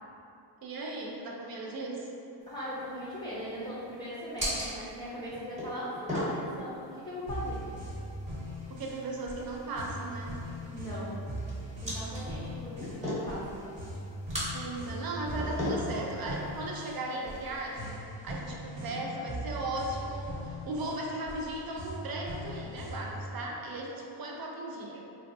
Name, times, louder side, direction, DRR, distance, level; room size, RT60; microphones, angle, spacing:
voice 1, 0.6-2.1 8.7-10.5 14.5-17.9 18.2-25.1, right 2 dB, 55° right, -1 dB, 0.5 m, -37 dB
sound 1, 2.4-17.8, equal, 15° right, 0.9 m, -40 dB
voice 2, 2.5-7.6 10.7-11.5 11.8-13.6, equal, 10° left, -11 dB, 0.5 m, -39 dB
sound 2, 7.3-23.3, equal, 80° right, 1.1 m, -40 dB
3.2 x 2.2 x 2.6 m, 2.6 s
cardioid pair, 95°, 45 cm